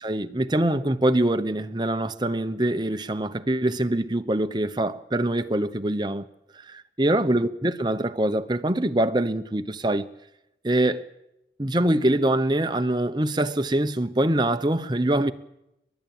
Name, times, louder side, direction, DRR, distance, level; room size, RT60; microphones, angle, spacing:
voice 1, 0.0-6.3 6.5-10.1 10.6-11.1 11.6-15.3, right 1 dB, 25° right, 0.9 m, -24 dB
29.5 x 12.5 x 8.9 m
head